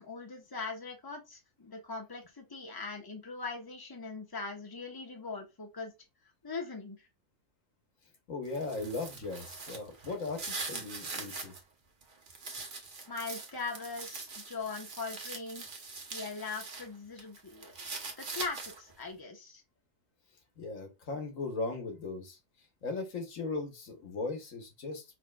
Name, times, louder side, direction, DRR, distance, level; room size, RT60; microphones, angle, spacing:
voice 1, 0.0-5.9 6.4-7.1 13.1-15.7 16.1-17.7 18.2-19.6, left 4 dB, 20° left, 1.1 m, -41 dB
voice 2, 8.3-11.6 20.6-22.4 22.8-25.0, left 3 dB, 90° left, 1.7 m, -38 dB
sound 1, 8.4-11.6 12.0-16.9 17.2-19.0, right 3 dB, 45° right, 1.1 m, -42 dB
5.1 x 4.1 x 2.4 m
omnidirectional pair, 1.3 m